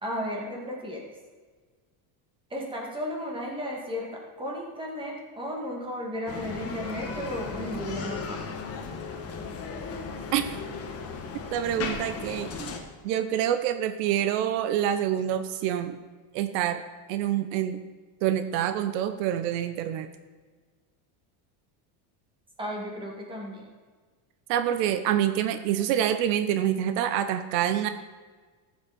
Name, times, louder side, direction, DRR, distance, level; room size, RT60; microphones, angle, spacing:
voice 1, 0.0-1.0 2.5-8.5 22.6-23.7, equal, 10° right, -2 dB, 2.1 m, -34 dB
Bicycle, 6.3-12.8, left 5 dB, 30° left, 1.3 m, -36 dB
voice 2, 11.5-12.7 13.0-16.0 16.3-16.8 17.1-17.8 18.2-20.1 24.5-27.9, right 10 dB, 80° right, 10 dB, 0.9 m, -26 dB
14.5 x 7.5 x 4.2 m, 1.4 s
cardioid pair, 155°, 49 cm